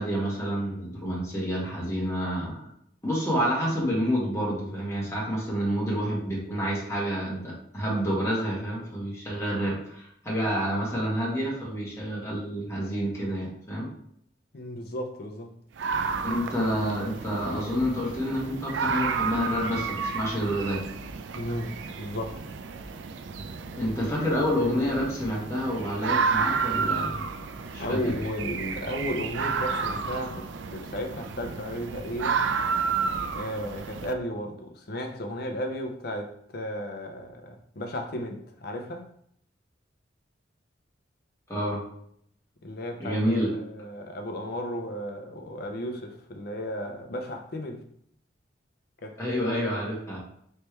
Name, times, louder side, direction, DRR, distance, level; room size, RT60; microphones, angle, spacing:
voice 1, 0.0-2.7 3.0-13.9 16.2-20.8 23.8-27.2 27.7-28.0 41.5-41.8 43.0-43.6 49.2-50.2, equal, 15° left, 1.3 m, -28 dB
voice 2, 14.5-15.5 21.4-22.4 27.8-30.5 30.7-32.4 33.3-39.0 42.6-43.2 43.5-47.8 49.0-49.2, equal, 55° left, 0.6 m, -34 dB
sound 1, 15.8-34.1, right 5 dB, 70° right, 0.4 m, -31 dB
3.3 x 3.2 x 4.4 m
head